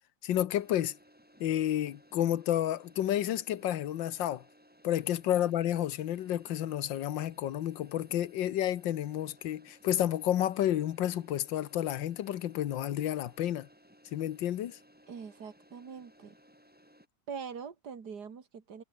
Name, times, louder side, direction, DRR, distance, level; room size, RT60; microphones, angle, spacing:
voice 1, 0.2-1.0 1.4-4.4 4.8-13.7 14.1-14.8, left 12 dB, 75° left, 1.7 m, -30 dB
sound 1, 0.5-17.1, equal, 5° right, 7.8 m, -61 dB
voice 2, 15.1-16.4 17.3-18.8, right 6 dB, 55° right, 2.8 m, -43 dB
omnidirectional pair, 2.1 m